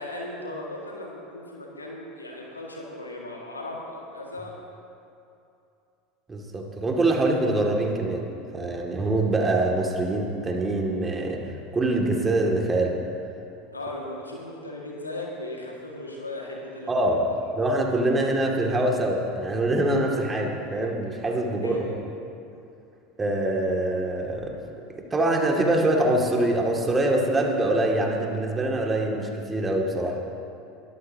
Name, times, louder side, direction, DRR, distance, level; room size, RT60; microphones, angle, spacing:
voice 1, 0.0-4.6 13.7-17.3 21.6-21.9, left 1 dB, 90° left, -2 dB, 1.8 m, -37 dB
voice 2, 6.3-8.3 8.5-13.0 16.9-17.2 17.6-21.9 23.2-24.5 25.1-30.2, right 1 dB, 20° right, 1 dB, 2.2 m, -24 dB
21.5 x 13.0 x 2.8 m, 2.6 s
figure-of-eight pair, 80°, 0 cm